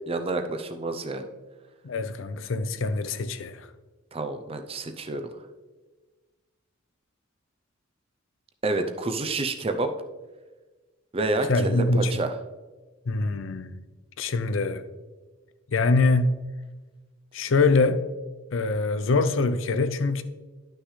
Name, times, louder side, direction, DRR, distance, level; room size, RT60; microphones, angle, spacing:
voice 1, 0.1-1.3 4.1-5.3 8.6-9.9 11.1-12.3, right 2 dB, 25° right, 0.5 m, -28 dB
voice 2, 1.8-3.7 11.5-12.1 13.1-13.8 14.2-14.8 15.7-16.3 17.3-18.0 18.5-20.2, left 3 dB, 65° left, 0.5 m, -24 dB
11.5 x 6.1 x 3.2 m
head